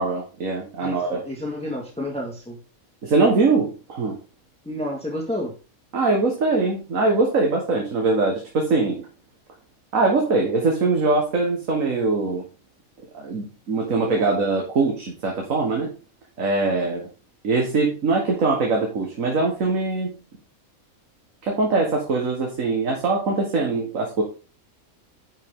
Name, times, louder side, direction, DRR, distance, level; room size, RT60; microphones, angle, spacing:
voice 1, 0.0-1.2 3.0-4.2 5.9-9.0 9.9-12.5 13.1-15.9 16.4-17.1 17.4-20.1 21.4-24.2, right 3 dB, 70° right, 0 dB, 1.9 m, -22 dB
voice 2, 0.8-2.6 4.7-5.5 14.1-14.3, left 1 dB, 5° left, -1 dB, 1.6 m, -30 dB
9.8 x 5.7 x 3.7 m, 0.34 s
omnidirectional pair, 1.5 m